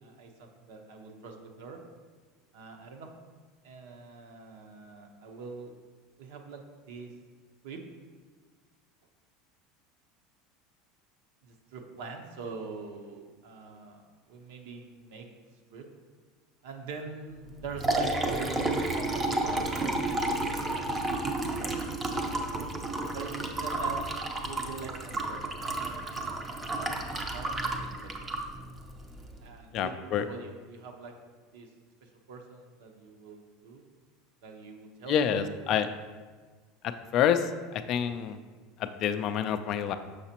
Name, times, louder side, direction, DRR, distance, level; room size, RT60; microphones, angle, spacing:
voice 1, 0.0-1.8 2.5-3.1 3.6-5.8 6.2-6.6 6.9-7.1 7.6-7.8 11.4-15.3 15.7-15.9 16.6-21.1 21.6-22.5 23.1-24.0 24.4-26.3 27.0-28.3 29.4-31.1 31.5-31.7 32.0-33.8 34.4-35.8, right 4 dB, 75° right, 3 dB, 0.8 m, -44 dB
Liquid, 17.5-29.4, right 2 dB, 15° right, 0.5 m, -31 dB
voice 2, 29.7-30.2 35.1-35.9 37.1-37.4 37.7-38.4 38.8-39.9, left 9 dB, 40° left, 9 dB, 0.3 m, -27 dB
6.5 x 5.9 x 2.9 m, 1.4 s
supercardioid pair, 160°, 0 cm